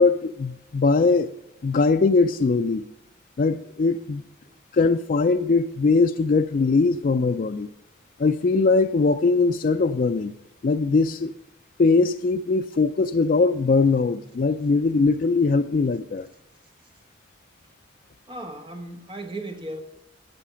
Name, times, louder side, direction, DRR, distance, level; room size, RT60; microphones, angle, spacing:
voice 1, 0.0-1.3 1.6-2.8 3.4-4.2 4.7-7.7 8.2-10.3 10.6-11.3 11.8-16.3, left 4 dB, 45° left, 8 dB, 0.4 m, -21 dB
voice 2, 18.3-19.8, right 1 dB, 30° right, 5 dB, 1.3 m, -36 dB
12.0 x 8.4 x 5.7 m, 0.90 s
head